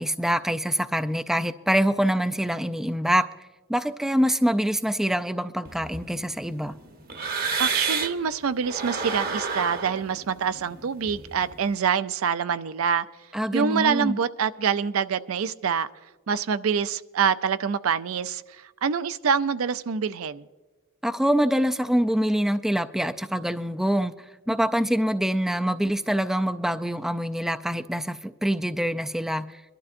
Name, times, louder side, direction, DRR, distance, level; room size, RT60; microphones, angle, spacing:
voice 1, 0.0-3.3 3.7-6.8 13.3-14.2 21.0-24.1 24.5-29.6, equal, ahead, 0.3 m, -25 dB
sound 1, 5.6-8.3 8.6-11.7, right 5 dB, 45° right, 0.9 m, -31 dB
voice 2, 7.6-13.0 13.5-15.9 16.3-18.4 18.8-20.5, right 6 dB, 85° right, 0.4 m, -25 dB
23.0 x 12.0 x 2.5 m
head